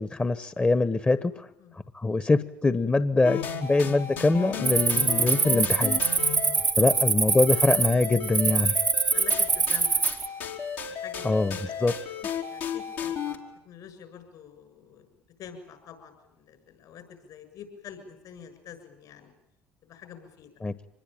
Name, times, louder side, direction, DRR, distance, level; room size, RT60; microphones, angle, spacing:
voice 1, 0.0-1.5 1.7-6.0 6.8-8.8 11.2-11.9 20.6-20.7, left 3 dB, 20° left, 14 dB, 1.1 m, -24 dB
sound 1, 3.2-13.4, left 6 dB, 80° left, 3.6 m, -34 dB
Cricket, 4.6-10.3, right 4 dB, 25° right, 0.9 m, -24 dB
voice 2, 6.6-7.1 8.8-10.2 10.9-12.1 12.5-15.1 15.4-19.3 19.8-20.5, left 8 dB, 65° left, 9 dB, 7.0 m, -47 dB
25.5 x 20.5 x 9.0 m, 0.92 s
hypercardioid pair, 65°, 7 cm